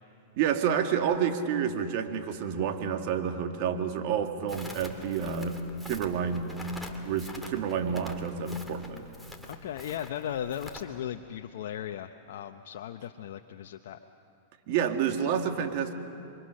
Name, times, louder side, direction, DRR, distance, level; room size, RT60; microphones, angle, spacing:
voice 1, 0.4-5.6 5.9-6.5 7.0-9.1 14.7-15.9, right 7 dB, 55° right, 5 dB, 2.0 m, -29 dB
Crackle, 4.5-10.8, left 1 dB, ahead, 2.4 m, -45 dB
voice 2, 9.5-14.0, left 10 dB, 70° left, 5 dB, 0.8 m, -37 dB
28.0 x 23.5 x 6.5 m, 2.7 s
hypercardioid pair, 125°, 0 cm